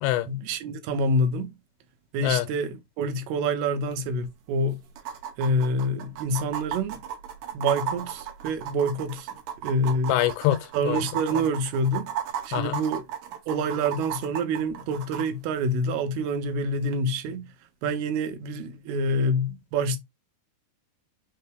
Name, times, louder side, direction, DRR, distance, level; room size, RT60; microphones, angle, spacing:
voice 1, 0.3-1.5 2.1-4.8 5.4-7.0 7.5-9.3 9.6-10.2 10.7-12.1 12.5-13.1 13.5-17.5 17.8-20.0, right 1 dB, 85° right, 2.7 m, -27 dB
sound 1, 3.9-4.0 4.2-4.3 5.0-15.3 16.9-17.0, right 9 dB, 70° right, 2.1 m, -34 dB
voice 2, 10.1-11.0 12.5-12.8, left 14 dB, 80° left, 2.3 m, -25 dB
5.9 x 2.2 x 3.3 m
omnidirectional pair, 4.5 m